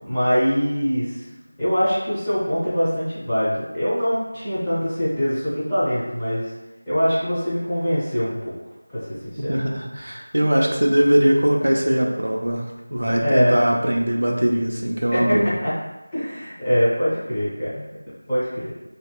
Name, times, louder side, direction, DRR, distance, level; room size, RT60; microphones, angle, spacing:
voice 1, 0.0-1.2 1.6-6.5 6.9-8.5 8.9-9.5 13.2-13.6 15.1-15.7 16.1-17.9 18.3-18.5, equal, 10° left, -17 dB, 0.6 m, -23 dB
voice 2, 9.5-15.5, right 1 dB, 85° right, 0 dB, 0.4 m, -21 dB
2.7 x 2.1 x 2.2 m, 1.1 s
figure-of-eight pair, 175°, 0 cm